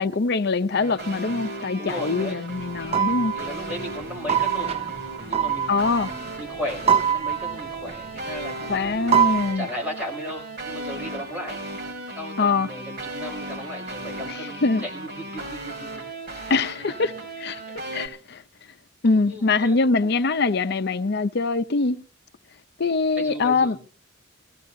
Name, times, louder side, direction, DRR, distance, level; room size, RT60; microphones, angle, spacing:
voice 1, 0.0-3.3 5.7-6.1 8.7-9.7 12.4-12.7 14.3-14.8 16.5-17.1 17.4-17.6 17.9-18.4 19.0-22.0 22.8-23.8, left 4 dB, 55° left, 0.6 m, -23 dB
sound 1, 0.7-18.1, right 2 dB, 55° right, 3.8 m, -36 dB
voice 2, 1.8-2.4 3.3-4.8 5.3-9.1 9.5-11.7 12.1-16.0 16.3-16.5 19.3-19.8 23.2-23.8, equal, 10° right, 6.1 m, -36 dB
sound 2, 2.5-6.6 6.9-8.5 8.9-9.6, right 8 dB, 30° right, 0.6 m, -24 dB
23.0 x 15.0 x 2.7 m
head